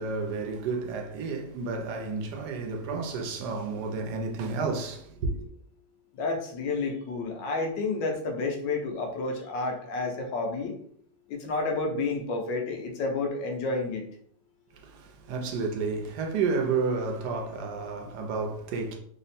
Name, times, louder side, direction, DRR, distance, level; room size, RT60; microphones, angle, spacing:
voice 1, 0.0-5.5 14.7-19.0, right 4 dB, 70° right, 1.1 m, -31 dB
voice 2, 6.1-10.7 11.3-14.1, left 3 dB, 80° left, 1.4 m, -30 dB
3.4 x 2.1 x 4.1 m
omnidirectional pair, 2.0 m